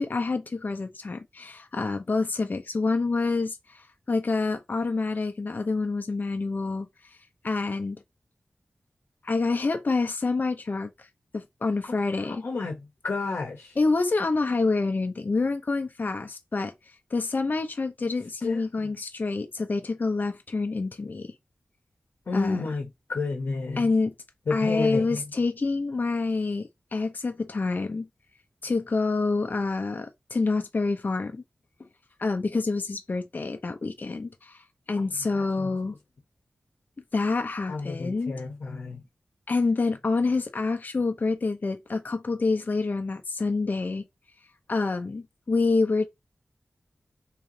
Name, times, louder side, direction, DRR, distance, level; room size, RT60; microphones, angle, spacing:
voice 1, 0.0-7.2 7.4-8.0 9.2-11.1 11.3-12.4 13.8-21.3 22.3-22.6 23.8-24.1 24.5-28.1 28.6-31.4 32.2-36.0 37.1-38.4 39.5-44.0 44.7-46.1, left 3 dB, 50° left, 0.6 m, -27 dB
voice 2, 11.9-13.8 18.4-18.9 22.3-23.9 24.5-25.2 35.3-35.7 37.7-39.0, left 3 dB, 80° left, 0.9 m, -31 dB
3.1 x 3.1 x 3.7 m
wide cardioid pair, 60°, 4 cm